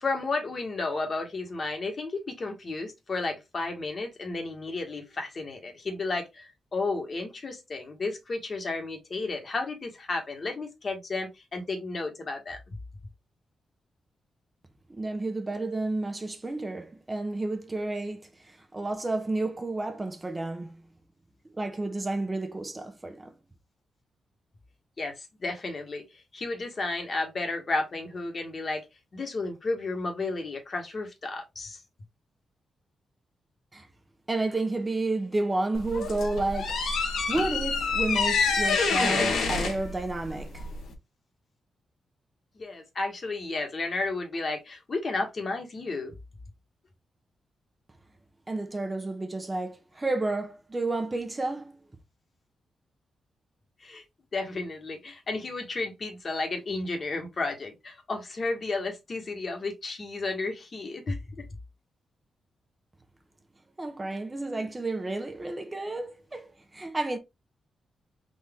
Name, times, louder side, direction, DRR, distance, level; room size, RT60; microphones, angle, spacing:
voice 1, 0.0-12.8 25.0-28.8 29.1-31.8 42.6-46.1 53.8-54.0 54.3-61.4, left 3 dB, 45° left, 1.5 m, -33 dB
voice 2, 14.9-20.8 21.6-23.3 33.7-33.9 34.3-40.7 48.5-51.8 63.8-67.2, right 2 dB, 25° right, 0.9 m, -31 dB
sound 1, 35.7-40.9, left 4 dB, 85° left, 1.2 m, -27 dB
4.1 x 2.7 x 3.6 m
cardioid pair, 80°, 0 cm